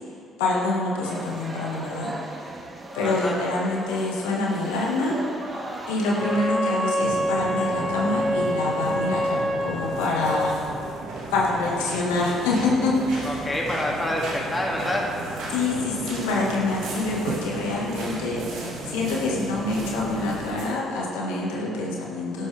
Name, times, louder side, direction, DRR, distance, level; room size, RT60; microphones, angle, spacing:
voice 1, 0.4-2.4 2.9-5.2 5.9-10.5 11.3-13.4 15.5-22.5, left 2 dB, 85° left, -3 dB, 1.8 m, -26 dB
sound 1, 1.0-6.5, right 1 dB, 30° right, 1.9 m, -37 dB
voice 2, 3.0-3.4 13.2-15.1, left 1 dB, 20° left, -2 dB, 2.6 m, -27 dB
Wind instrument woodwind instrument, 6.1-10.6, equal, 5° right, 2.4 m, -27 dB
sound 2, 7.0-20.7, right 2 dB, 75° right, 3.2 m, -34 dB
12.0 x 11.5 x 3.5 m, 2.3 s
hypercardioid pair, 55°, 0 cm